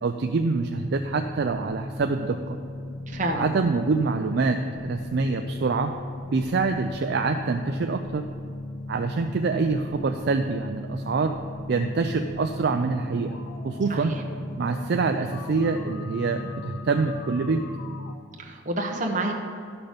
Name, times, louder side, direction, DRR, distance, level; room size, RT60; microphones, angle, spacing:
voice 1, 0.0-2.6 3.3-5.9 6.3-8.2 8.9-11.4 11.7-14.2 14.6-17.6, right 4 dB, 55° right, 5 dB, 0.4 m, -26 dB
sound 1, 0.7-18.2, left 2 dB, 85° left, 0.7 m, -36 dB
voice 2, 3.1-3.5 13.9-14.2 18.4-19.3, right 2 dB, 35° right, 2 dB, 1.0 m, -28 dB
11.5 x 5.9 x 5.1 m, 2.4 s
head